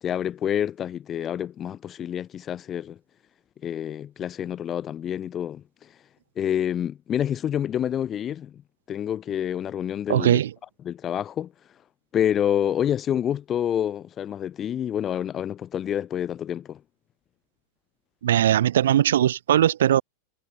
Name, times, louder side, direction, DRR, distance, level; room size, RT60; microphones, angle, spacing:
voice 1, 0.0-3.0 3.6-6.0 6.4-8.6 8.9-10.4 10.8-11.5 12.1-16.8, left 10 dB, 25° left, 1.2 m, -28 dB
voice 2, 10.1-10.5 18.2-20.0, right 11 dB, 60° right, 1.7 m, -20 dB
figure-of-eight pair, 90°, 0 cm